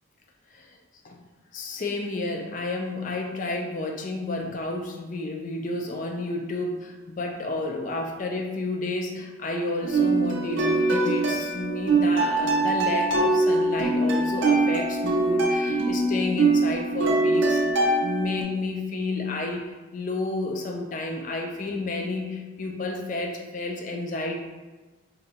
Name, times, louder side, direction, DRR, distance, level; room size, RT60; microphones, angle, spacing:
voice 1, 1.5-17.6 18.0-19.6 19.9-24.4, left 2 dB, 40° left, 2 dB, 0.4 m, -31 dB
sound 1, 9.8-18.4, right 2 dB, 70° right, 0.5 m, -23 dB
3.9 x 2.3 x 2.7 m, 1.2 s
head